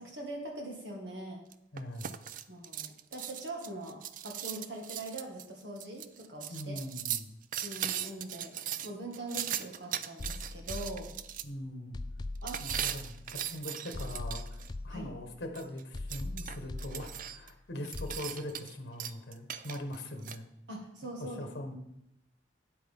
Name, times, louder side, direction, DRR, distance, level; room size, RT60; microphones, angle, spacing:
voice 1, 0.0-1.4 2.5-6.8 7.6-11.1 12.4-12.6 14.9-15.1 20.7-21.4, right 1 dB, 65° right, 1 dB, 2.1 m, -42 dB
sound 1, 1.5-11.4 12.5-14.7 15.5-17.5 17.8-18.7 19.0-20.4, right 10 dB, 45° right, 0.4 m, -39 dB
voice 2, 1.7-2.1 6.5-7.4 11.4-12.0 12.6-20.5 21.2-21.8, left 1 dB, 60° left, 4 dB, 1.4 m, -41 dB
sound 2, 10.2-11.5 11.9-13.5 13.9-15.5 15.9-17.5 17.9-18.2, left 2 dB, 25° left, 0.3 m, -41 dB
9.1 x 8.3 x 3.7 m, 0.80 s
head